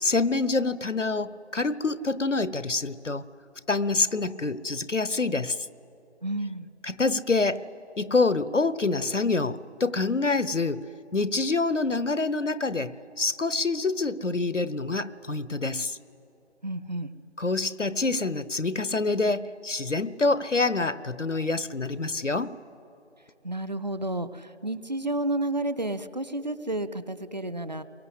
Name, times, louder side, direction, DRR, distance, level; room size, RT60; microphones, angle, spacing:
voice 1, 0.0-3.2 3.7-5.6 6.8-7.6 8.0-10.8 11.1-16.0 17.4-22.5, left 3 dB, 85° left, 16 dB, 1.0 m, -26 dB
voice 2, 6.2-6.7 16.6-17.1 23.4-27.8, right 1 dB, 35° right, 13 dB, 0.8 m, -31 dB
30.0 x 22.5 x 8.1 m, 2.9 s
figure-of-eight pair, 160°, 36 cm